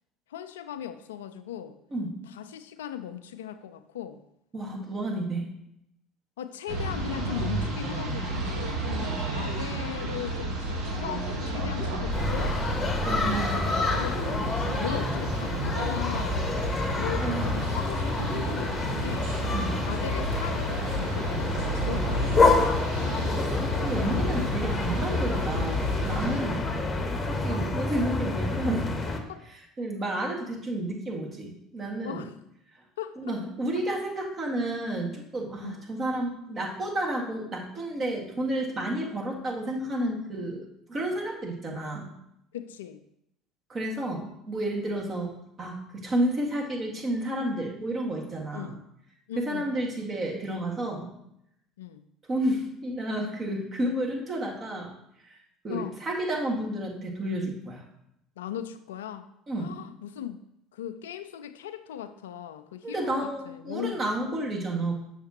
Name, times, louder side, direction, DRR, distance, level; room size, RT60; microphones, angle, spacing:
voice 1, 0.3-1.8 2.3-4.2 6.4-12.6 13.1-16.4 17.0-19.3 19.8-23.8 27.3-27.7 29.3-29.5 32.0-32.4 33.0-33.2 35.6-35.8 42.5-43.0 48.5-48.8 49.3-49.8 51.8-52.0 55.7-56.0 58.4-59.3 59.6-60.4 60.7-64.3, left 10 dB, 80° left, 10 dB, 0.4 m, -38 dB
voice 2, 4.5-5.5 13.1-13.7 17.2-17.7 19.5-19.7 23.8-26.8 27.3-28.9 29.8-32.3 33.2-40.6 40.9-42.1 43.7-48.8 49.4-51.1 52.3-54.9 55.3-55.4 55.6-57.8 59.5-59.8 62.8-65.0, right 1 dB, 35° right, -1 dB, 1.9 m, -31 dB
sound 1, 6.7-26.4, right 1 dB, 70° right, 1.4 m, -31 dB
sound 2, 12.1-29.2, left 3 dB, 25° left, 1.0 m, -28 dB
6.6 x 6.4 x 2.9 m, 0.78 s
hypercardioid pair, 65°, 0 cm